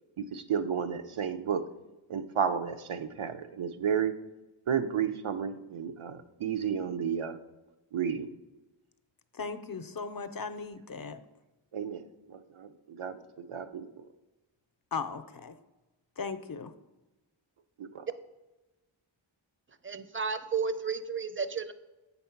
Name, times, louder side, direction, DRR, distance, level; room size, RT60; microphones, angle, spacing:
voice 1, 0.2-1.7 2.1-4.1 4.7-7.4 7.9-8.3 11.7-12.0 12.3-13.2 13.5-14.0 17.8-18.0, right 7 dB, 80° right, 8 dB, 0.6 m, -32 dB
voice 2, 9.3-11.2 14.9-15.6 16.2-16.7, left 5 dB, 50° left, 10 dB, 0.5 m, -37 dB
voice 3, 19.8-21.7, right 5 dB, 25° right, 12 dB, 0.5 m, -32 dB
8.0 x 4.1 x 5.7 m, 1.1 s
wide cardioid pair, 60°, 48 cm